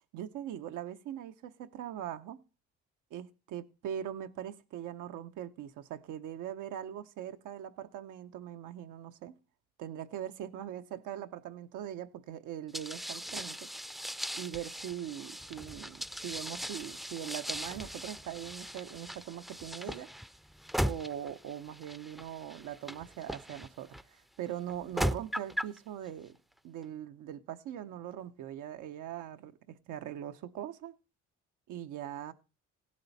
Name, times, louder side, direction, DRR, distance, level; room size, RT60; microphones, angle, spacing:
voice 1, 0.1-2.4 3.1-9.3 9.8-13.7 14.4-20.1 20.8-26.4 26.6-30.9 31.7-32.3, right 10 dB, 90° right, 0.9 m, -41 dB
sound 1, 12.7-24.0 24.7-25.8, equal, ahead, 0.5 m, -38 dB
16.5 x 7.6 x 4.1 m
cardioid pair, 90°, 30 cm